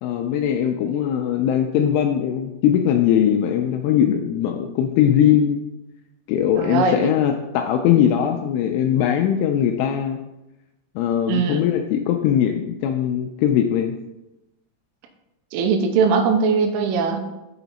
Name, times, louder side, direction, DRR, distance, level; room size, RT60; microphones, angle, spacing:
voice 1, 0.0-5.6 6.3-10.2 11.0-14.0, left 9 dB, 85° left, 4 dB, 2.8 m, -20 dB
voice 2, 6.6-7.1 11.3-11.7 15.5-17.2, right 5 dB, 85° right, 5 dB, 3.3 m, -20 dB
6.8 x 5.9 x 4.0 m, 0.95 s
omnidirectional pair, 6.0 m